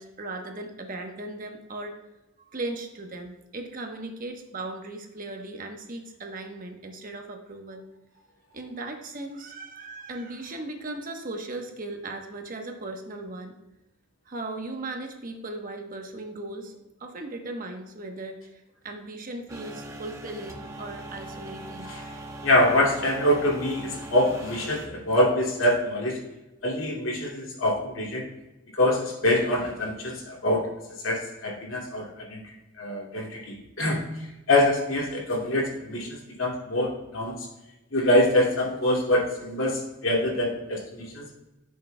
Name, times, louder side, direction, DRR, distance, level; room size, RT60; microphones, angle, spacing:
voice 1, 0.0-2.0 2.5-7.8 8.5-13.5 14.3-21.9, right 2 dB, 45° right, 3 dB, 1.1 m, -37 dB
sound 1, 19.5-24.9, right 1 dB, 15° right, 0.9 m, -40 dB
voice 2, 22.4-26.3 26.6-28.3 28.7-30.7 31.0-37.5 37.9-41.3, left 1 dB, 80° left, -2 dB, 2.3 m, -25 dB
13.0 x 6.6 x 2.2 m, 0.99 s
head